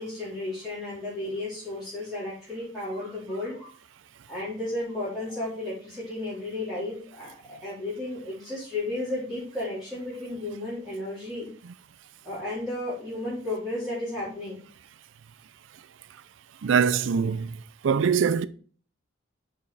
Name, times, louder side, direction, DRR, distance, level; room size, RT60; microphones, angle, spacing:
voice 1, 0.0-3.7 4.3-11.5 12.2-14.7, left 2 dB, ahead, 3.7 m, -33 dB
voice 2, 16.6-17.6 17.8-18.5, right 6 dB, 75° right, 0.4 m, -23 dB
6.5 x 5.4 x 4.2 m
head